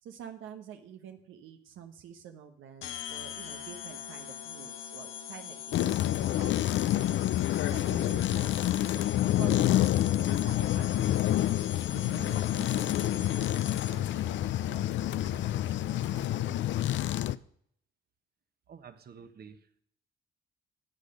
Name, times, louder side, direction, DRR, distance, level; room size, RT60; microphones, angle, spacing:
voice 1, 0.0-9.0 9.4-9.7 10.2-11.4 11.9-16.9, right 8 dB, 85° right, 6 dB, 1.0 m, -48 dB
sound 1, 2.8-14.2, left 9 dB, 85° left, 1.0 m, -43 dB
sound 2, 5.7-17.4, left 13 dB, 70° left, 0.5 m, -28 dB
voice 2, 18.7-19.8, right 6 dB, 50° right, 9 dB, 1.3 m, -50 dB
14.0 x 8.7 x 5.3 m, 0.64 s
cardioid pair, 90°, 20 cm